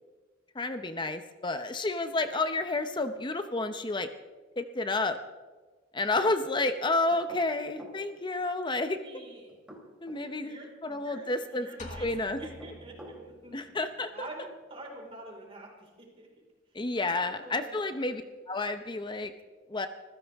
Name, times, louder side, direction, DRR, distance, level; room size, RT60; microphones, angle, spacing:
voice 1, 0.5-4.1 4.6-5.2 5.9-9.0 10.0-10.6 10.8-11.7 12.0-12.4 13.5-14.3 16.7-18.2 18.5-19.3 19.7-19.9, left 2 dB, 25° left, 9 dB, 0.8 m, -30 dB
sound 1, 7.1-8.0 9.5-10.3 12.4-13.2, equal, 5° right, 3.2 m, -47 dB
voice 2, 9.0-9.5 10.4-13.7 14.1-16.3 17.2-17.9 18.8-18.9, right 2 dB, 30° right, -1 dB, 4.7 m, -47 dB
sound 2, 11.8-13.6, left 1 dB, 40° left, 1.9 m, -46 dB
26.0 x 15.5 x 3.6 m, 1.3 s
head